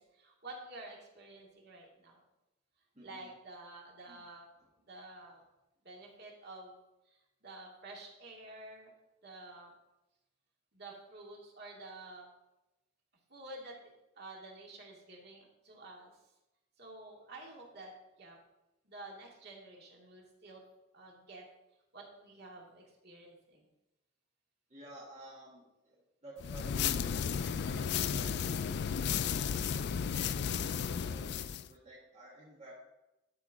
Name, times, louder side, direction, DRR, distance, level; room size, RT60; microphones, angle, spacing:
voice 1, 0.0-2.2 3.0-4.5 4.8-5.4 5.8-6.8 7.1-8.9 9.2-9.7 10.7-12.3 13.3-16.1 16.8-17.9 18.2-18.4 18.8-20.6 20.9-21.4 21.9-23.6, right 2 dB, 55° right, -1 dB, 2.2 m, -50 dB
voice 2, 2.9-3.3 4.1-4.2 24.7-26.0 26.2-28.6 29.2-32.7, right 1 dB, 35° right, -5 dB, 1.7 m, -53 dB
sound 1, 26.4-31.7, left 7 dB, 55° left, 0.3 m, -33 dB
11.5 x 4.8 x 5.0 m, 0.95 s
head